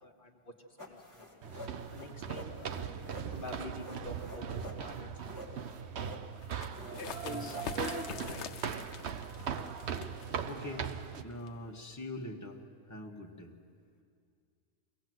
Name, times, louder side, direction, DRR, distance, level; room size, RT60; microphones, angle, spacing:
voice 1, 0.0-0.5 0.9-1.4 1.9-3.0 3.3-5.1 5.3-5.7 7.0-8.8, left 1 dB, 50° left, 2 dB, 1.3 m, -45 dB
sound 1, 0.8-9.0, equal, 15° right, 2.3 m, -49 dB
sound 2, 1.4-11.2, right 7 dB, 75° right, 1.1 m, -40 dB
sound 3, 6.4-11.7, left 7 dB, 85° left, 1.0 m, -46 dB
voice 2, 7.2-7.5 10.5-12.6 12.9-13.5, left 1 dB, 15° left, -1 dB, 1.5 m, -43 dB
23.0 x 17.5 x 7.9 m, 2.3 s
omnidirectional pair, 1.1 m